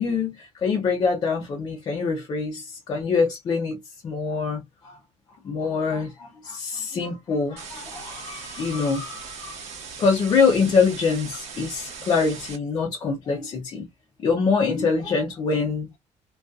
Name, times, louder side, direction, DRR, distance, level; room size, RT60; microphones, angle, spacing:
voice 1, 0.0-3.8 4.0-5.0 5.4-9.6 10.0-13.9 14.2-16.0, left 5 dB, 35° left, 0.5 m, -24 dB
sound 1, 7.6-12.6, right 6 dB, 60° right, 0.9 m, -39 dB
2.5 x 2.3 x 2.2 m
cardioid pair, 175°, 13 cm